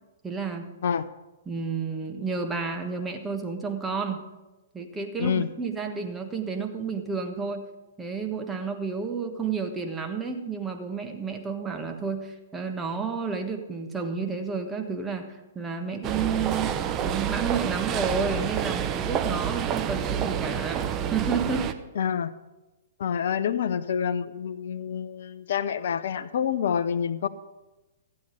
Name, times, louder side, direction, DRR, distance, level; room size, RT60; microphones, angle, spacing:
voice 1, 0.2-0.7 1.5-4.2 4.7-7.6 8.0-16.7 17.0-21.7, right 5 dB, 10° right, 3 dB, 1.4 m, -31 dB
sound 1, 16.0-21.7, right 8 dB, 25° right, 0.7 m, -28 dB
voice 2, 22.0-22.3 23.0-27.3, left 8 dB, 60° left, 12 dB, 0.6 m, -27 dB
14.5 x 8.7 x 5.0 m, 1.1 s
figure-of-eight pair, 115°, 0 cm